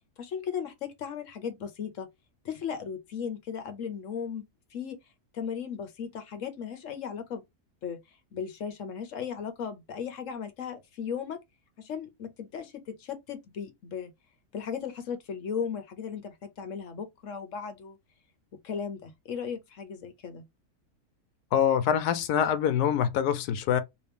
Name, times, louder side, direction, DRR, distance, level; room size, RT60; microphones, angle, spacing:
voice 1, 0.2-2.1 2.4-4.4 4.7-5.0 5.3-7.4 7.8-8.0 8.3-11.4 11.8-14.1 14.5-18.0 18.6-20.4, left 7 dB, 60° left, 1.0 m, -36 dB
voice 2, 21.5-23.8, left 9 dB, 90° left, 1.2 m, -25 dB
3.0 x 2.9 x 3.3 m
omnidirectional pair, 1.6 m